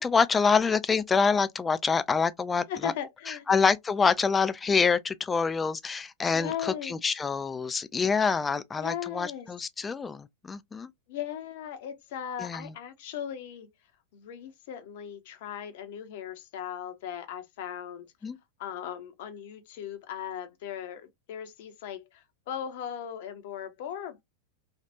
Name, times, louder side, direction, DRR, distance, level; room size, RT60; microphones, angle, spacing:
voice 1, 0.0-2.9 3.3-10.9 12.4-12.7 18.2-18.4, left 5 dB, 15° left, 0.4 m, -26 dB
voice 2, 2.7-3.5 6.3-7.0 8.8-9.5 11.1-13.7 14.1-18.1 18.6-24.2, left 9 dB, 50° left, 0.7 m, -38 dB
3.3 x 2.4 x 2.7 m
figure-of-eight pair, 90°, 0 cm